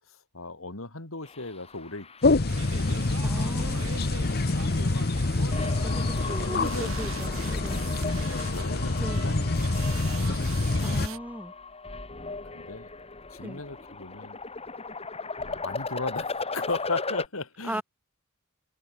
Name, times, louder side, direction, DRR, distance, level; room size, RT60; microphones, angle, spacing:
voice 1, 0.1-2.3 4.4-4.7 6.5-7.0 8.1-10.2 12.5-12.9 13.3-14.4 15.4-17.8, left 3 dB, 70° left, 3.0 m, -37 dB
sound 1, 1.2-2.9 3.2-3.9 5.5-17.3, left 3 dB, 30° left, 3.8 m, -37 dB
sound 2, 2.2-11.1, left 2 dB, 50° left, 1.0 m, -26 dB
sound 3, 2.5-11.2, right 6 dB, 75° right, 4.4 m, -42 dB
voice 2, 3.2-4.1 5.8-8.1 9.0-9.2 10.8-11.5 13.4-13.6 17.6-17.8, right 1 dB, 5° right, 1.6 m, -37 dB
head